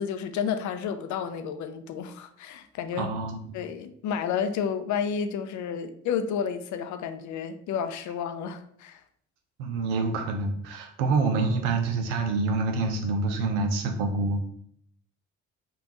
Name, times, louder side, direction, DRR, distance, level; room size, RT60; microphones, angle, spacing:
voice 1, 0.0-3.1 3.5-9.0, left 7 dB, 55° left, 9 dB, 0.5 m, -31 dB
voice 2, 3.0-3.6 9.6-14.4, right 3 dB, 80° right, 4 dB, 0.6 m, -27 dB
3.4 x 2.5 x 2.9 m, 0.64 s
hypercardioid pair, 50°, 36 cm